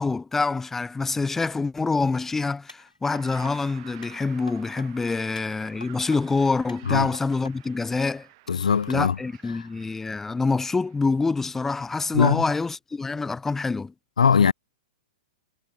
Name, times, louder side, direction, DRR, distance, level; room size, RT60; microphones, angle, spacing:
voice 1, 0.0-8.3 8.9-13.9, left 4 dB, 10° left, 0.4 m, -26 dB
sound 1, 2.7-3.5 4.0-4.9 5.4-6.2 6.7-7.5 8.0-8.1, left 2 dB, 85° left, 1.4 m, -46 dB
sound 2, 3.0-11.3, right 22 dB, 45° right, 2.6 m, -51 dB
voice 2, 8.5-9.2 9.5-9.7 12.1-12.4 14.2-14.5, left 6 dB, 70° left, 0.5 m, -20 dB
figure-of-eight pair, 110°, 4 cm